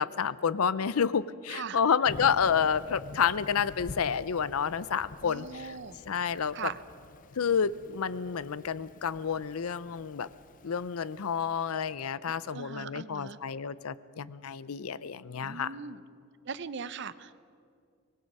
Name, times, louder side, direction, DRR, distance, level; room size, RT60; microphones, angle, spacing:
voice 1, 0.0-5.8 6.1-6.6 7.4-10.3 10.6-15.7, left 7 dB, 85° left, 17 dB, 0.6 m, -29 dB
voice 2, 1.5-1.8 5.2-6.0 6.5-6.8 12.5-13.4 15.4-16.0 16.4-17.3, right 5 dB, 55° right, 15 dB, 0.6 m, -39 dB
Thunder / Rain, 2.1-11.7, left 3 dB, 40° left, 0.5 m, -48 dB
24.5 x 19.5 x 5.5 m, 2.3 s
head